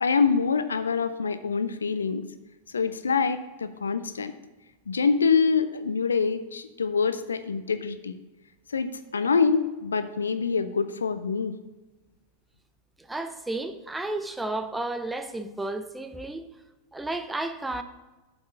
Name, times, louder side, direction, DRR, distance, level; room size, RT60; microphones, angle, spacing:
voice 1, 0.0-2.3 2.7-4.3 4.9-8.2 8.7-11.5, left 5 dB, 70° left, 0.5 m, -25 dB
voice 2, 13.0-16.4 16.9-17.8, right 2 dB, 5° right, 0.6 m, -32 dB
8.2 x 5.5 x 5.8 m
figure-of-eight pair, 90°, 0 cm